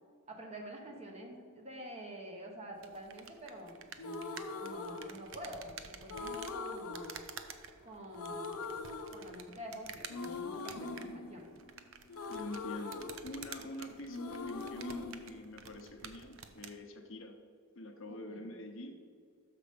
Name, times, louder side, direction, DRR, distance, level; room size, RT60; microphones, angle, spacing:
voice 1, 0.3-7.2 7.8-8.7 9.1-11.5 18.1-18.4, equal, 30° right, 1 dB, 1.1 m, -48 dB
sound 1, 2.8-16.8, right 7 dB, 60° right, 0.6 m, -51 dB
sound 2, 4.0-5.6 6.1-7.8 8.1-9.7 10.1-13.8 14.1-16.1, left 3 dB, 85° left, 0.6 m, -42 dB
voice 2, 12.3-17.4 17.7-19.0, left 1 dB, 60° left, 4 dB, 0.9 m, -46 dB
6.6 x 6.1 x 5.0 m, 2.1 s
head